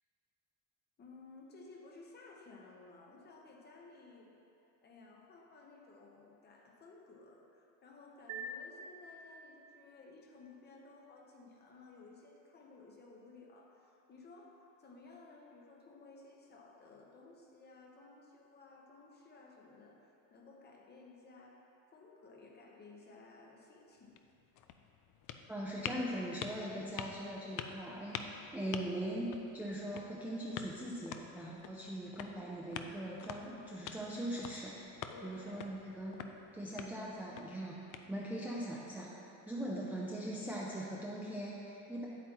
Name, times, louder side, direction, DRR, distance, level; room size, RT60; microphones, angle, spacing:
voice 1, 1.0-4.3 4.8-24.1 35.1-35.7, left 3 dB, 25° left, 0 dB, 0.9 m, -56 dB
sound 1, 8.3-9.8, right 1 dB, 45° right, 1.1 m, -46 dB
sound 2, 24.0-38.5, left 8 dB, 50° left, 0.5 m, -48 dB
voice 2, 25.5-34.7 35.2-36.2 36.5-37.8 38.1-39.1 39.4-42.1, right 1 dB, 5° right, -6 dB, 0.5 m, -41 dB
9.0 x 8.3 x 3.0 m, 2.8 s
cardioid pair, 160°, 39 cm